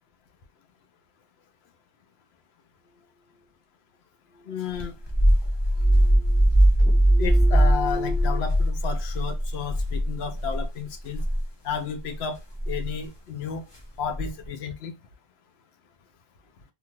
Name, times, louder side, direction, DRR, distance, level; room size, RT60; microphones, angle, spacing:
sound 1, 4.3-5.3 5.6-6.5 6.8-8.4, equal, 25° right, 0.9 m, -37 dB
voice 1, 4.5-4.9 7.2-11.2 11.6-12.4 12.7-13.7 14.0-15.0, left 7 dB, 70° left, 0.8 m, -32 dB
sound 2, 4.8-10.6 11.1-11.4 12.6-12.9 14.1-14.5, right 1 dB, 25° left, 0.7 m, -21 dB
2.6 x 2.4 x 3.0 m
omnidirectional pair, 1.2 m